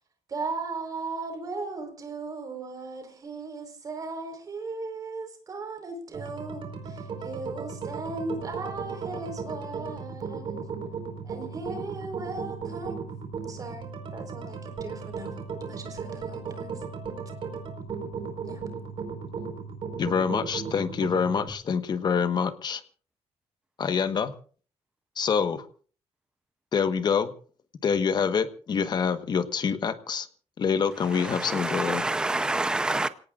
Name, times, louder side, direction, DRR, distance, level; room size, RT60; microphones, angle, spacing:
voice 1, 0.3-10.7 11.2-13.0 13.5-15.4 15.7-16.7 18.4-18.7, right 3 dB, 30° right, 4.5 m, -37 dB
sound 1, 6.1-21.5, right 5 dB, 50° right, 4.8 m, -36 dB
voice 2, 20.0-22.8 23.8-24.3 25.2-25.6 26.7-27.3 27.8-30.3 30.6-32.1, left 6 dB, 40° left, 1.3 m, -26 dB
voice 3, 31.1-33.1, right 2 dB, 5° right, 0.7 m, -27 dB
29.0 x 18.0 x 2.5 m
cardioid pair, 175°, 11 cm